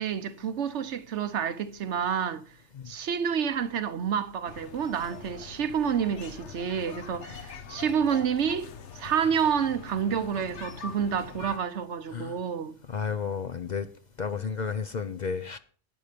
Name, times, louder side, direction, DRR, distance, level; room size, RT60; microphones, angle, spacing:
voice 1, 0.0-2.4 2.9-8.7 9.0-12.7, right 7 dB, 75° right, 1.1 m, -29 dB
sound 1, 4.4-11.6, left 6 dB, 75° left, 1.2 m, -43 dB
voice 2, 12.9-13.9 14.2-15.6, left 6 dB, 45° left, 0.7 m, -32 dB
11.0 x 9.5 x 5.1 m
omnidirectional pair, 1.2 m